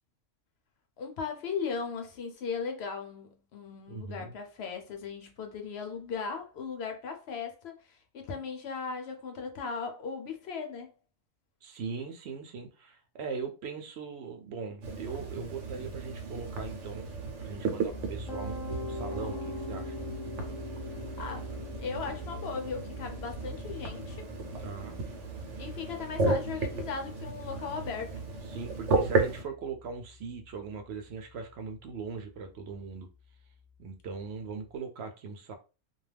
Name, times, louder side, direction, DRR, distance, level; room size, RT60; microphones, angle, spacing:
voice 1, 1.0-10.9 21.2-21.5 21.8-24.3 25.6-28.2, left 5 dB, 70° left, 0.8 m, -37 dB
voice 2, 3.9-4.3 11.6-17.1 17.4-20.0 22.0-22.2 24.6-25.0 28.5-33.1 33.8-35.5, right 5 dB, 70° right, 0.8 m, -40 dB
sound 1, 14.8-29.4, right 3 dB, 90° right, 1.0 m, -34 dB
Piano, 17.9-29.8, left 2 dB, 25° left, 0.6 m, -43 dB
2.3 x 2.2 x 3.2 m
omnidirectional pair, 1.2 m